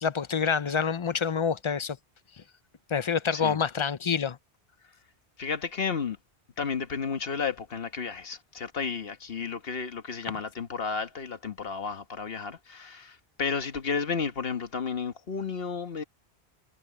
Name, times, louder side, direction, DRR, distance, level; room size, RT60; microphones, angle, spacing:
voice 1, 0.0-2.0 2.9-4.4, left 6 dB, 35° left, 0.6 m, -27 dB
voice 2, 5.4-6.2 6.6-16.0, left 5 dB, 65° left, 1.5 m, -32 dB
omnidirectional pair, 1.1 m